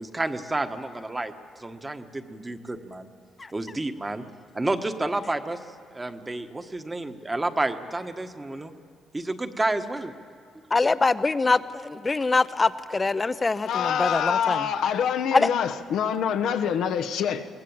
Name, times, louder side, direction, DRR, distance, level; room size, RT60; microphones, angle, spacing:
voice 1, 0.0-1.3 1.6-3.1 3.5-4.2 4.5-5.6 5.9-8.7 9.1-10.1, right 2 dB, 20° right, 8 dB, 1.3 m, -30 dB
voice 2, 10.7-14.7 15.3-15.5, left 3 dB, 25° left, 14 dB, 0.7 m, -24 dB
voice 3, 13.6-17.5, left 8 dB, 80° left, 7 dB, 1.0 m, -25 dB
22.0 x 18.0 x 8.7 m, 2.2 s
cardioid pair, 90°, 0 cm